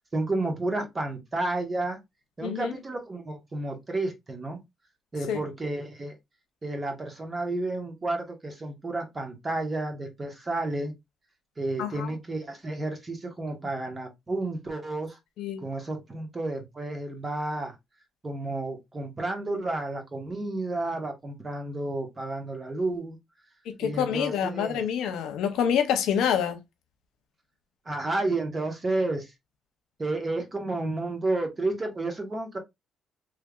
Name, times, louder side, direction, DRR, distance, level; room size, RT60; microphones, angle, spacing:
voice 1, 0.1-2.0 2.4-4.6 5.1-6.1 6.6-11.0 11.6-15.2 15.6-17.7 18.2-23.2 23.8-24.8 27.8-29.3 30.0-32.6, right 2 dB, 30° right, 1.2 m, -31 dB
voice 2, 2.4-2.7 5.3-5.4 11.8-12.1 15.4-15.6 23.7-26.6, left 8 dB, 85° left, 0.7 m, -27 dB
3.3 x 3.2 x 2.4 m
cardioid pair, 90°, 0 cm